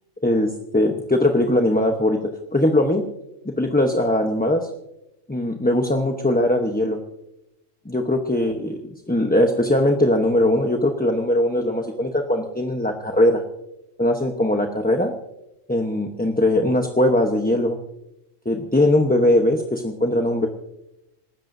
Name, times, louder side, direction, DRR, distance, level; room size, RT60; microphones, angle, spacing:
voice 1, 0.2-3.0 3.4-4.7 5.3-7.0 7.8-13.4 14.0-15.2 15.7-17.8 18.4-20.5, left 1 dB, 10° left, 2 dB, 0.8 m, -20 dB
27.0 x 13.5 x 2.7 m, 0.87 s
omnidirectional pair, 1.4 m